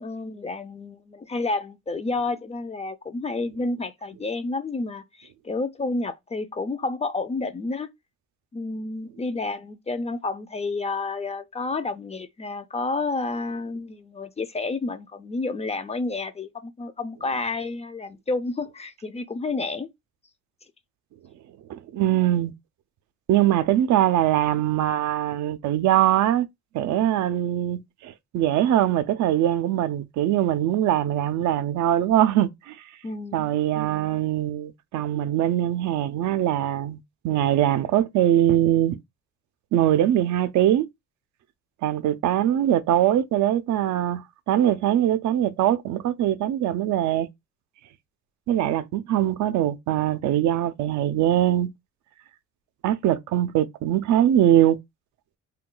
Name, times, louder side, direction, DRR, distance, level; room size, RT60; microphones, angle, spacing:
voice 1, 0.0-7.9 8.5-19.9 33.0-33.5, left 3 dB, 20° left, 0.3 m, -30 dB
voice 2, 21.7-22.5 23.3-26.5 26.7-32.8 33.3-39.0 39.7-40.9 41.8-47.3 48.5-51.7 52.8-54.8, right 12 dB, 70° right, 0.4 m, -22 dB
2.3 x 2.3 x 3.7 m
cardioid pair, 90°, 30 cm